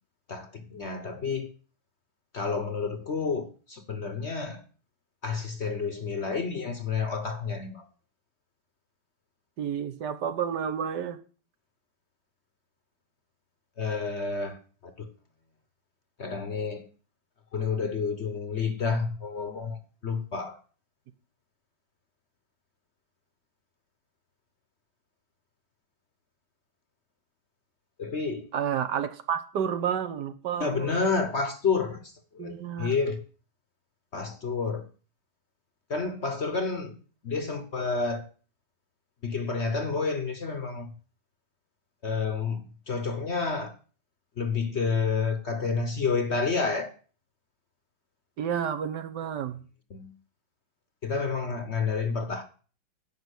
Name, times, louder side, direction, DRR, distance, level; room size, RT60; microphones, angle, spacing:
voice 1, 0.3-1.5 2.3-4.6 5.2-7.9 13.8-15.1 16.2-16.9 17.5-20.6 28.0-28.5 30.6-33.2 34.1-34.9 35.9-37.0 37.2-38.3 39.2-40.9 42.0-43.7 44.4-46.9 49.9-50.1 51.0-52.4, left 4 dB, 45° left, 1.0 m, -30 dB
voice 2, 9.6-11.2 28.5-30.9 32.4-32.9 48.4-49.6, right 8 dB, 70° right, 1.5 m, -30 dB
10.5 x 5.7 x 8.1 m
omnidirectional pair, 2.0 m